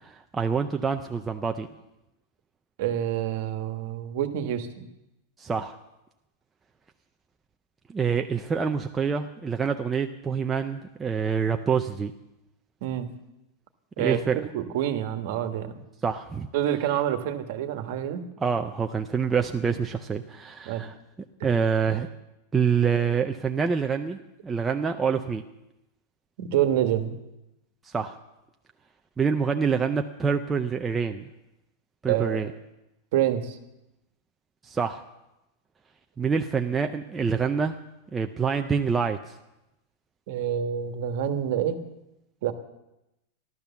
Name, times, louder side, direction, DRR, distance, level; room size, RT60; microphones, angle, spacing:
voice 1, 0.0-1.7 5.4-5.7 7.9-12.1 14.0-14.4 16.0-16.5 18.4-20.9 21.4-22.1 22.5-25.4 27.8-28.2 29.2-31.3 32.0-32.5 34.6-35.0 36.2-37.8 38.1-39.3, right 6 dB, 10° right, 4 dB, 0.4 m, -26 dB
voice 2, 2.8-4.9 12.8-13.1 14.0-15.8 16.5-18.2 20.7-20.9 26.4-27.1 32.1-32.5 33.1-33.6 40.3-41.8 42.4-42.5, right 10 dB, 45° right, 10 dB, 1.4 m, -27 dB
15.0 x 12.0 x 7.0 m, 0.92 s
supercardioid pair, 180°, 0 cm